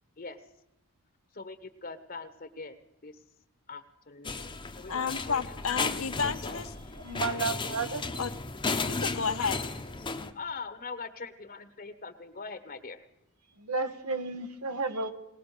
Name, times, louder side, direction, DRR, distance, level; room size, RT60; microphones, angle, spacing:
voice 1, 1.3-2.8 3.0-3.1 3.7-5.9 6.4-6.6 7.2-7.8 10.3-13.0, left 4 dB, 40° left, 11 dB, 1.3 m, -42 dB
sound 1, 4.2-10.3, left 4 dB, 20° left, 1.0 m, -34 dB
voice 2, 4.9-6.7 8.2-8.3 8.7-9.6, left 5 dB, 65° left, 8 dB, 1.3 m, -31 dB
voice 3, 7.0-8.1 13.6-15.1, right 3 dB, 80° right, 8 dB, 1.6 m, -32 dB
20.5 x 18.5 x 6.8 m, 0.84 s
head